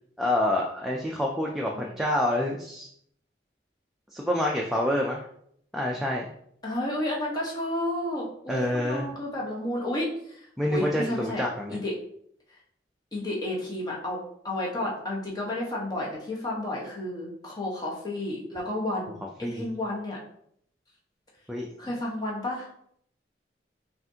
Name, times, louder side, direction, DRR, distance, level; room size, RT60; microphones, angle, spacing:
voice 1, 0.2-2.9 4.1-5.2 5.7-6.3 8.5-9.1 10.6-11.8 19.4-19.7 21.5-21.7, left 1 dB, ahead, -2 dB, 0.3 m, -27 dB
voice 2, 6.6-10.1 10.4-11.4 11.7-11.9 13.1-20.2 21.8-22.7, left 1 dB, 20° left, -4 dB, 1.1 m, -31 dB
5.7 x 2.5 x 2.7 m, 0.68 s
head